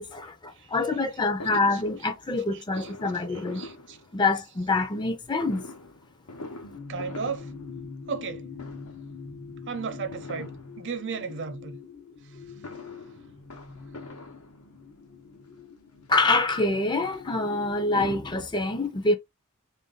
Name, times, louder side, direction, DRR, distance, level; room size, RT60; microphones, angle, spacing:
voice 1, 0.0-3.6 4.1-5.6 16.1-19.2, left 2 dB, 20° left, 0.5 m, -26 dB
Fireworks, 1.4-4.6 5.4-8.3 8.5-9.2 10.1-11.2 12.4-15.0 15.8-15.9 16.2-16.3 16.6-17.9 18.2-18.3 18.4-18.5, left 2 dB, 85° left, 1.0 m, -45 dB
voice 2, 2.5-2.9 3.3-4.0 6.9-7.5 8.1-8.5 9.7-11.8 12.2-12.4 13.0-13.2, right 5 dB, 55° right, 0.7 m, -35 dB
sound 1, 6.6-18.3, left 5 dB, 60° left, 0.8 m, -44 dB
3.5 x 2.6 x 3.9 m
head